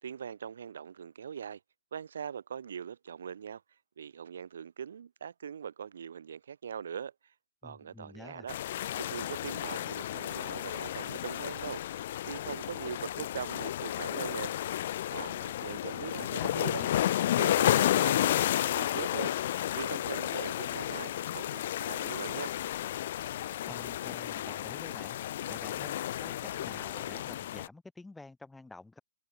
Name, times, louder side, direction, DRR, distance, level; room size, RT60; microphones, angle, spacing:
voice 1, 0.0-1.6 1.9-3.6 4.0-7.1 7.6-8.6 9.0-12.0 12.2-14.5 15.1-16.8 17.4-19.4 19.7-22.5, right 7 dB, 75° right, 2.5 m, -41 dB
voice 2, 7.6-8.5 16.2-17.0 23.7-25.2 25.5-29.0, left 3 dB, 5° left, 1.5 m, -49 dB
sound 1, 8.5-27.7, left 12 dB, 50° left, 0.6 m, -32 dB
hypercardioid pair, 155°, 0 cm